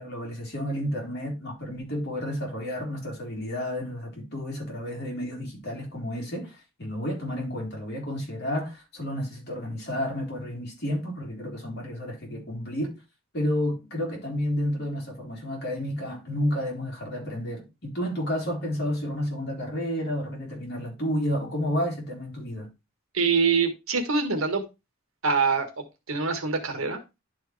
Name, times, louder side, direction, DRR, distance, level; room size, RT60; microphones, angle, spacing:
voice 1, 0.0-13.0 13.3-22.7, equal, 50° left, 3.4 m, -31 dB
voice 2, 23.1-24.6 25.2-27.0, right 5 dB, 85° right, 1.5 m, -25 dB
11.0 x 4.6 x 3.2 m
head